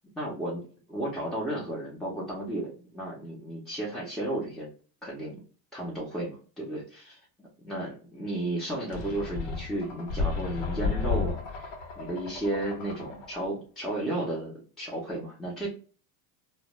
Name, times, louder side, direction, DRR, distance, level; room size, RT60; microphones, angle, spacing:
voice 1, 0.1-4.7 5.0-5.4 5.7-11.7 12.0-15.7, right 1 dB, ahead, -6 dB, 0.4 m, -33 dB
sound 1, 8.9-13.5, left 4 dB, 70° left, 0.9 m, -33 dB
2.1 x 2.0 x 2.9 m, 0.39 s
supercardioid pair, 120°, 41 cm